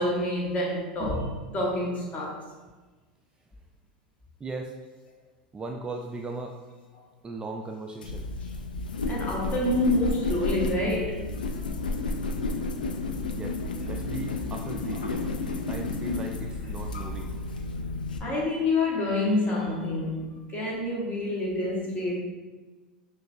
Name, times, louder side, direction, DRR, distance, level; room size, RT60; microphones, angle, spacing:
voice 1, 0.0-2.4 7.0-7.1 8.4-8.5 9.1-11.3 18.2-22.2, left 2 dB, 30° left, 1.2 m, -27 dB
voice 2, 4.4-4.7 5.5-6.6 7.2-8.3 13.3-13.6 13.9-15.3 15.7-17.3, right 3 dB, 20° right, 0.3 m, -37 dB
sound 1, 8.0-18.2, left 3 dB, 85° left, 0.4 m, -31 dB
5.8 x 2.6 x 2.6 m
hypercardioid pair, 85°, 5 cm